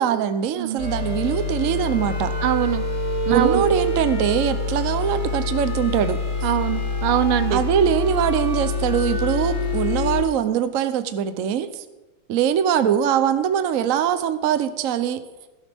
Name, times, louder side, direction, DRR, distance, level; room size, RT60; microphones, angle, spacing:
voice 1, 0.0-2.3 3.3-6.5 7.5-11.8 12.3-15.2, right 9 dB, 60° right, 11 dB, 0.8 m, -22 dB
sound 1, 0.8-10.2, left 2 dB, 80° left, 4.7 m, -25 dB
voice 2, 2.4-2.8 3.3-3.6 6.4-7.6, right 12 dB, 85° right, 12 dB, 1.6 m, -22 dB
17.0 x 11.5 x 3.5 m, 1.1 s
omnidirectional pair, 2.3 m